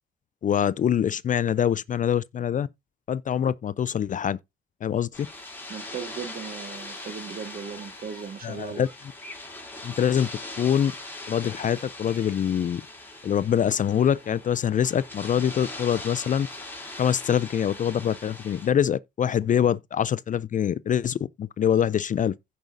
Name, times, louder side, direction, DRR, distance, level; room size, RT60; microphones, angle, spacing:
voice 1, 0.4-2.7 3.1-4.4 4.8-5.3 8.4-8.9 9.8-10.3 10.6-10.9 11.3-12.8 13.2-16.5 17.0-22.3, left 9 dB, 40° left, 0.4 m, -24 dB
sound 1, 5.1-18.7, left 2 dB, 10° left, 2.9 m, -41 dB
voice 2, 5.7-8.9, right 7 dB, 45° right, 1.5 m, -37 dB
16.0 x 5.3 x 2.5 m
cardioid pair, 90°, 20 cm